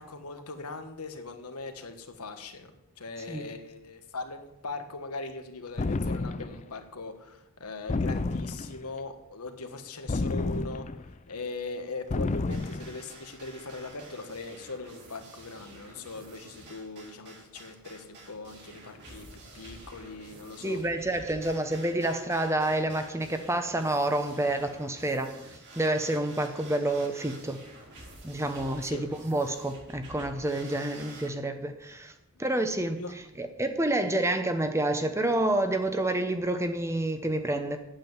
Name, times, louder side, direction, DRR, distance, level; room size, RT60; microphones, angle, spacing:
voice 1, 0.0-2.7 3.0-10.9 11.3-20.8 28.8-29.0 33.0-33.1, left 3 dB, 85° left, 7 dB, 1.4 m, -40 dB
sound 1, 5.8-6.7 7.9-8.9 10.1-11.1 12.1-13.0, left 3 dB, 30° left, 0.4 m, -30 dB
sound 2, 12.5-31.3, right 2 dB, 50° right, 3.8 m, -49 dB
voice 2, 20.6-25.3 25.8-27.6 28.2-32.1 32.4-33.0 33.4-37.8, right 1 dB, 10° right, 8 dB, 0.9 m, -28 dB
8.8 x 7.7 x 9.1 m, 0.87 s
head